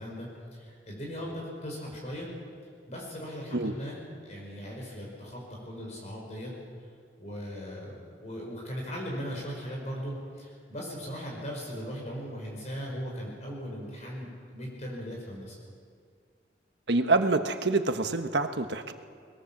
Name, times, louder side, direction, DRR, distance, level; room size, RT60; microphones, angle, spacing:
voice 1, 0.0-2.3 2.9-6.5 7.2-15.6, equal, 40° left, -2 dB, 5.3 m, -38 dB
voice 2, 16.9-18.9, right 3 dB, 75° right, 7 dB, 1.3 m, -26 dB
21.5 x 21.0 x 7.3 m, 2.2 s
head